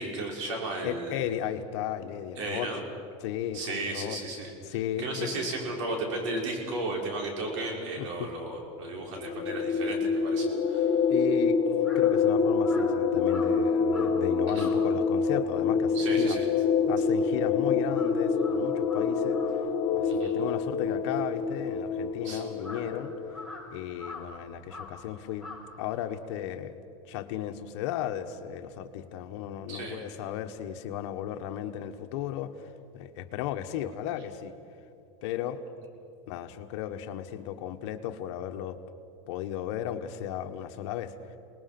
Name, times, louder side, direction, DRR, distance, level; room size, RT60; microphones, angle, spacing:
voice 1, 0.0-1.2 2.4-2.8 3.5-4.5 5.0-11.0 14.5-14.7 15.9-16.4 20.1-20.3 22.2-22.4 29.7-30.0, right 2 dB, 85° right, 0 dB, 6.0 m, -34 dB
voice 2, 0.8-2.7 3.2-4.2 4.6-5.3 8.0-8.3 11.1-11.6 11.9-16.4 16.9-19.4 19.9-23.1 23.7-25.5 25.8-26.7 27.1-34.5 35.2-35.6 36.3-38.8 39.3-41.1, left 11 dB, 70° left, 7 dB, 1.5 m, -35 dB
sound 1, 9.1-23.5, left 5 dB, 55° left, 2.4 m, -26 dB
Crow, 10.9-17.4 17.7-26.4, left 2 dB, 5° right, 6.6 m, -47 dB
28.5 x 20.0 x 6.1 m, 2.6 s
supercardioid pair, 150°, 15 cm